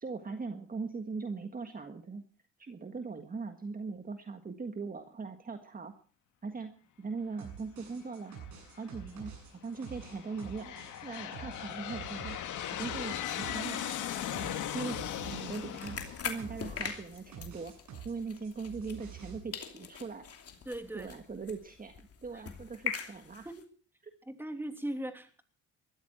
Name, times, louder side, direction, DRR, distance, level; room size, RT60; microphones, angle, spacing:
voice 1, 0.0-2.2 2.6-5.9 6.4-6.7 7.0-8.3 8.8-10.8 11.0-12.4 12.8-13.8 14.7-17.7 18.0-20.2 20.9-23.5, right 4 dB, 30° right, 7 dB, 1.6 m, -40 dB
sound 1, 7.4-18.2 18.4-19.4, right 7 dB, 75° right, 7.9 m, -48 dB
Aircraft, 8.3-8.9 9.6-17.1, left 10 dB, 80° left, 2.2 m, -39 dB
sound 2, 15.1-19.3 19.5-23.6, left 6 dB, 50° left, 2.8 m, -42 dB
voice 2, 20.6-21.1 22.3-22.4 23.4-23.7 24.3-25.4, right 1 dB, 5° right, 7 dB, 2.9 m, -39 dB
20.0 x 14.0 x 4.4 m, 0.40 s
cardioid pair, 90°, 30 cm